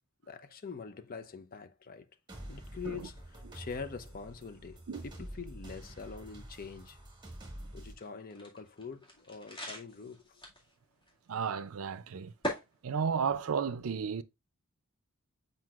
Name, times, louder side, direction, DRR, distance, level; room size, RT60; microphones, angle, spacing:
voice 1, 0.3-2.1 2.5-7.0 7.7-10.4, left 5 dB, 40° left, 0.6 m, -44 dB
sound 1, 2.3-7.9, right 1 dB, 20° right, 1.6 m, -47 dB
sound 2, 8.0-10.7 11.0-11.1 12.4-12.6, equal, 20° left, 2.1 m, -40 dB
voice 2, 11.3-12.3 12.8-14.2, right 6 dB, 70° right, 0.5 m, -33 dB
7.6 x 5.1 x 2.4 m
head